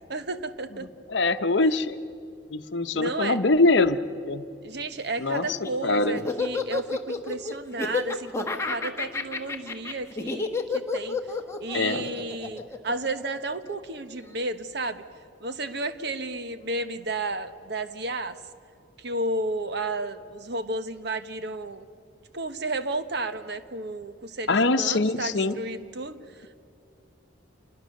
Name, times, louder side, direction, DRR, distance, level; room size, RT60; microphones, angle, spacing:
voice 1, 0.1-0.9 2.9-3.4 4.6-11.2 11.6-15.0 15.4-18.4 19.0-21.9 22.3-26.5, right 2 dB, 55° right, 10 dB, 1.1 m, -32 dB
voice 2, 1.1-2.0 2.5-4.0 4.2-4.5 5.2-5.5 5.8-6.2 11.7-12.1 24.5-25.5, left 3 dB, 60° left, 10 dB, 0.9 m, -23 dB
Laughter, 5.3-13.7, left 4 dB, 15° left, 1.2 m, -30 dB
28.0 x 21.0 x 6.5 m, 2.4 s
head